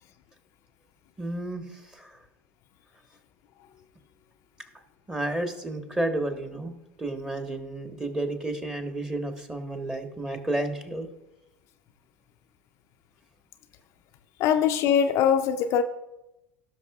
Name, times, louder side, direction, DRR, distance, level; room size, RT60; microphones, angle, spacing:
voice 1, 1.2-2.2 5.1-6.7 7.0-11.1, right 1 dB, 10° right, 6 dB, 1.3 m, -31 dB
voice 2, 14.4-15.8, left 8 dB, 50° left, 8 dB, 0.5 m, -22 dB
17.0 x 6.0 x 2.4 m, 0.96 s
hypercardioid pair, 85°, 6 cm